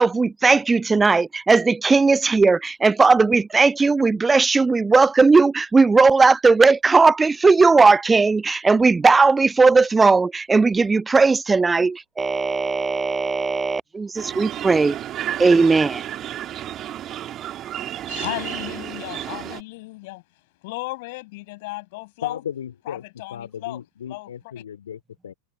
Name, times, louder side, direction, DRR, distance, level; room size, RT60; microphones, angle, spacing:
voice 1, 0.0-15.0 15.4-16.0, right 4 dB, 10° right, 0.4 m, -17 dB
sound 1, 14.2-19.6, right 12 dB, 30° right, 3.9 m, -32 dB
voice 2, 18.1-20.2 20.6-22.4 22.9-23.8 24.1-24.3, left 23 dB, 50° left, 7.1 m, -34 dB
voice 3, 22.2-23.0 23.3-25.3, left 9 dB, 65° left, 3.4 m, -35 dB
figure-of-eight pair, 90°, 0 cm